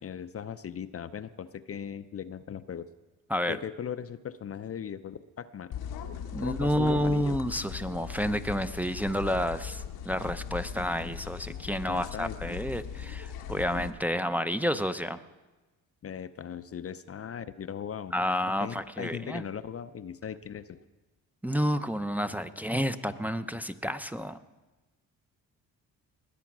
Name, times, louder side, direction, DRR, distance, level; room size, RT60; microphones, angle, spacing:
voice 1, 0.0-2.9 3.5-5.7 6.4-7.4 11.9-12.6 16.0-18.1 18.6-20.8, left 8 dB, 40° left, 12 dB, 0.6 m, -38 dB
sound 1, 5.7-13.9, left 8 dB, 80° left, 1.1 m, -39 dB
voice 2, 6.3-15.2 18.1-19.4 21.4-24.4, equal, 5° right, 9 dB, 0.7 m, -30 dB
20.5 x 8.3 x 6.1 m, 1.2 s
cardioid pair, 75°, 36 cm